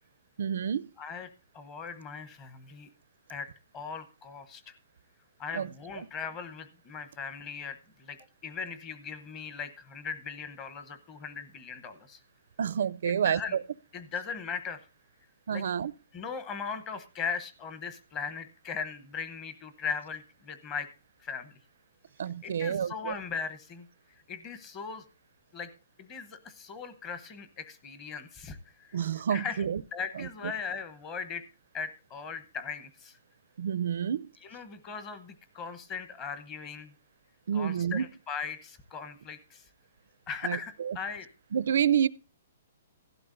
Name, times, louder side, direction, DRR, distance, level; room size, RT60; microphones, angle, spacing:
voice 1, 0.4-0.9 5.5-5.7 6.0-6.1 12.6-13.6 15.5-15.9 22.2-23.1 28.9-29.8 30.2-30.5 33.6-34.3 37.5-38.0 40.4-41.0 41.5-42.1, right 8 dB, 55° right, 0.5 m, -29 dB
voice 2, 1.0-1.3 1.5-2.9 3.3-3.5 3.7-4.7 5.4-12.2 13.0-13.6 13.9-14.8 15.5-15.7 16.1-20.9 21.2-21.6 22.4-23.9 24.3-25.0 25.5-25.7 26.0-29.6 29.9-31.4 31.7-33.2 34.4-36.9 37.5-39.6 40.3-41.3, left 6 dB, 15° left, 0.9 m, -39 dB
16.5 x 12.0 x 2.6 m
hypercardioid pair, 175°, 0 cm